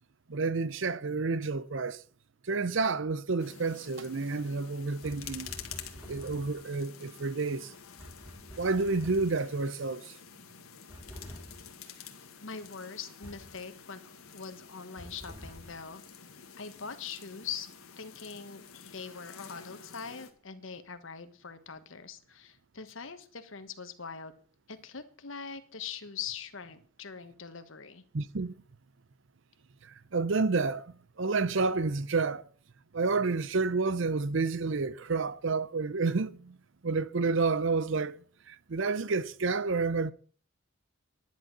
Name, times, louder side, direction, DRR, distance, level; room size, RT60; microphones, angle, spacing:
voice 1, 0.3-2.0 2.5-5.5 6.1-7.7 8.6-10.0 28.1-28.5 30.1-30.9 31.2-32.4 32.9-36.6 36.8-38.2 38.5-40.1, right 4 dB, 60° right, 0.6 m, -29 dB
sound 1, 3.4-20.3, left 7 dB, 85° left, 1.7 m, -49 dB
sound 2, 5.0-6.8 8.0-9.6 10.9-11.8 13.2-13.6 15.0-15.9, equal, 10° right, 4.3 m, -48 dB
voice 2, 12.4-14.0 14.3-16.0 16.6-17.7 18.0-24.3 24.7-28.0, left 6 dB, 65° left, 1.3 m, -42 dB
10.5 x 10.5 x 6.0 m
head